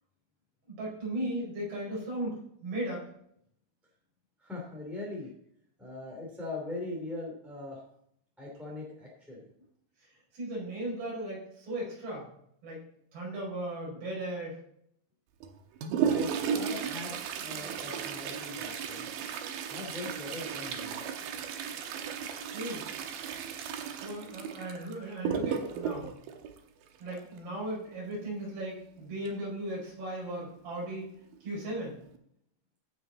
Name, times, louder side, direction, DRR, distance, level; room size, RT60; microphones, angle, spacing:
voice 1, 0.7-3.0 10.3-12.3 12.6-12.8 13.1-14.6 22.5-22.9 23.9-26.1 27.0-31.1 31.4-32.0, right 1 dB, 90° right, -5 dB, 7.0 m, -36 dB
voice 2, 4.4-5.3 5.8-7.8 8.4-9.4 16.0-19.1 19.7-21.0, left 2 dB, ahead, -4 dB, 2.1 m, -41 dB
Toilet flush, 15.4-27.4 29.3-29.4 29.7-29.8 30.6-30.7 31.3-31.6 32.0-32.2, right 7 dB, 75° right, 2.5 m, -35 dB
14.5 x 6.4 x 4.0 m, 0.71 s
omnidirectional pair, 4.5 m